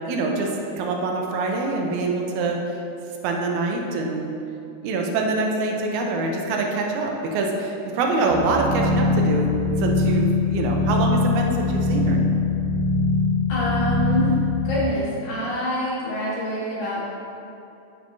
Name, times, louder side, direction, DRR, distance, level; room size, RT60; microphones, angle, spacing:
voice 1, 0.1-0.5 0.8-2.6 3.2-4.3 4.8-12.2, right 3 dB, 85° right, 1 dB, 2.1 m, -25 dB
sound 1, 8.3-14.7, left 3 dB, 65° right, 2.3 m, -22 dB
voice 2, 13.5-14.4 14.6-17.0, left 1 dB, 85° left, -8 dB, 3.1 m, -26 dB
9.7 x 6.6 x 2.7 m, 2.7 s
omnidirectional pair, 3.4 m